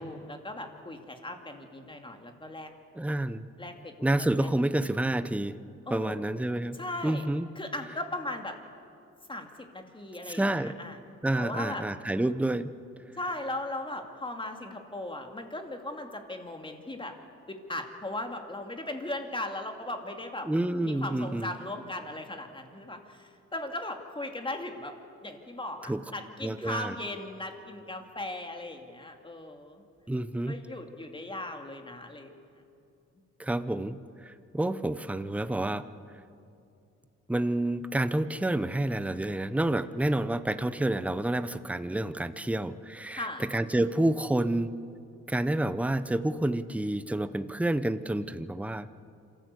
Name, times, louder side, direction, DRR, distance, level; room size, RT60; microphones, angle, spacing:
voice 1, 0.0-2.7 3.6-4.5 5.9-6.2 6.7-7.2 7.6-8.6 9.3-11.0 11.3-11.9 13.2-17.1 17.5-20.5 20.8-25.0 25.2-29.8 30.5-32.3 43.1-43.4, left 1 dB, 15° left, 4 dB, 2.5 m, -38 dB
voice 2, 3.0-3.5 4.0-5.6 5.9-6.8 7.0-7.5 10.3-10.7 11.2-12.7 20.4-21.5 25.9-26.0 26.4-26.9 30.1-30.5 33.4-35.9 37.3-44.7 45.3-48.9, right 1 dB, 5° right, 12 dB, 0.8 m, -29 dB
26.5 x 14.0 x 8.4 m, 2.6 s
cardioid pair, 90°, 30 cm